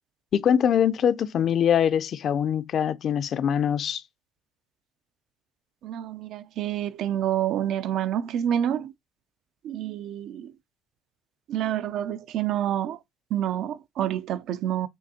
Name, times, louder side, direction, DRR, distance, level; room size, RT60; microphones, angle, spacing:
voice 1, 0.3-4.0, left 8 dB, 50° left, 0.4 m, -23 dB
voice 2, 5.8-8.9 9.6-10.5 11.5-13.0 13.3-14.9, right 10 dB, 70° right, 0.4 m, -28 dB
6.3 x 2.7 x 2.7 m
cardioid pair, 120°, 0 cm